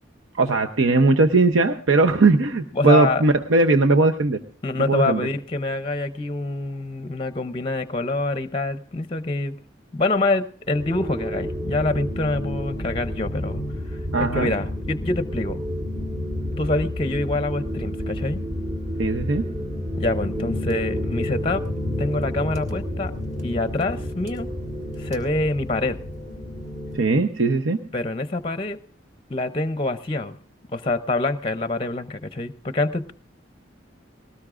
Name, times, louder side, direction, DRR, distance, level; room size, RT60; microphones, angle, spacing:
voice 1, 0.4-4.4 4.9-5.3 14.1-14.5 19.0-19.4 26.9-27.8, right 3 dB, 90° right, 5 dB, 0.8 m, -19 dB
voice 2, 2.7-3.2 4.6-9.6 9.9-13.6 14.2-15.6 16.6-18.4 20.0-21.6 22.0-23.1 23.4-24.5 25.0-26.0 27.9-28.8 29.3-30.4 30.7-33.1, left 2 dB, 25° left, 11 dB, 0.6 m, -25 dB
sound 1, 10.7-27.0, left 1 dB, 40° right, 1.7 m, -30 dB
20.0 x 18.0 x 2.5 m, 0.44 s
head